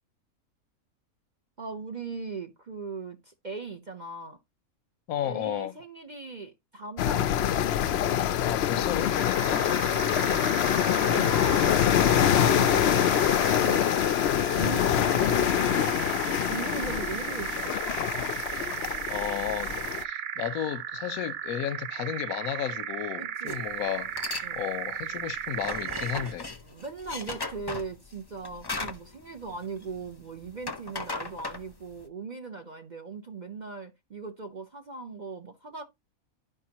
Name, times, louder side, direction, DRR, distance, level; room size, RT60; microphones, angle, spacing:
voice 1, 1.6-4.4 5.2-7.6 9.9-10.5 11.0-14.0 14.5-17.8 23.2-23.7 24.4-24.6 26.6-35.8, right 4 dB, 40° right, 0.8 m, -39 dB
voice 2, 5.1-5.7 8.4-9.7 19.1-24.2 24.5-26.5, left 10 dB, 80° left, 1.1 m, -33 dB
sound 1, 7.0-20.0, left 10 dB, 60° left, 0.7 m, -25 dB
sound 2, 9.0-26.4, right 8 dB, 85° right, 0.4 m, -36 dB
sound 3, 23.5-23.7 24.0-24.5 24.8-30.1 30.4-32.0, left 3 dB, 25° left, 0.6 m, -37 dB
12.0 x 5.1 x 2.9 m
omnidirectional pair, 1.5 m